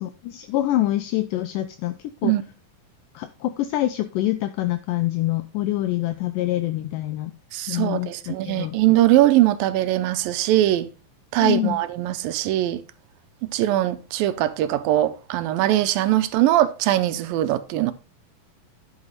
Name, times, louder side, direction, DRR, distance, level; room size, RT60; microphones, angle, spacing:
voice 1, 0.0-1.9 2.2-2.3 3.2-7.3 7.7-8.8 11.4-11.8, left 15 dB, 80° left, 2.0 m, -25 dB
voice 2, 7.5-10.9 11.3-12.8 13.5-17.9, right 14 dB, 80° right, 2.4 m, -21 dB
11.0 x 6.4 x 4.0 m
omnidirectional pair, 4.2 m